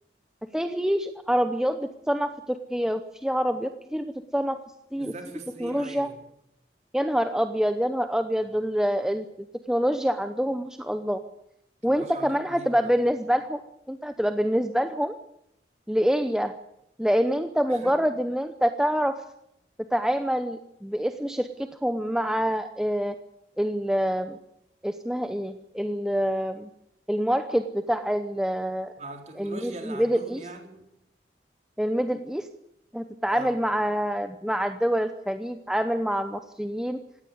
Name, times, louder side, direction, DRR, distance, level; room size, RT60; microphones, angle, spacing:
voice 1, 0.5-4.6 4.9-5.1 5.6-6.1 6.9-11.2 11.8-13.6 13.9-15.2 15.9-16.5 17.0-19.1 19.9-23.1 23.6-24.4 24.8-26.7 27.1-28.9 29.4-30.4 31.8-32.5 32.9-37.0, equal, 5° right, 8 dB, 0.8 m, -26 dB
voice 2, 5.0-6.1 11.9-13.0 17.7-18.1 29.0-30.9 33.3-33.5, right 2 dB, 40° right, 3 dB, 3.9 m, -41 dB
18.0 x 16.0 x 9.4 m, 0.79 s
head